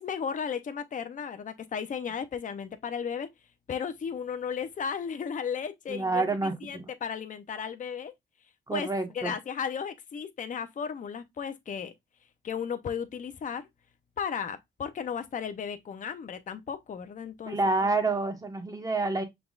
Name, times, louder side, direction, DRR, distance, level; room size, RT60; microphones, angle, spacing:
voice 1, 0.0-3.3 3.7-8.1 8.7-8.9 9.1-11.9 12.4-13.7 14.2-17.6, left 7 dB, 40° left, 0.7 m, -35 dB
voice 2, 5.9-6.9 8.7-9.3 17.5-19.2, right 3 dB, 20° right, 1.4 m, -28 dB
5.9 x 3.6 x 2.4 m
cardioid pair, 90°, 20 cm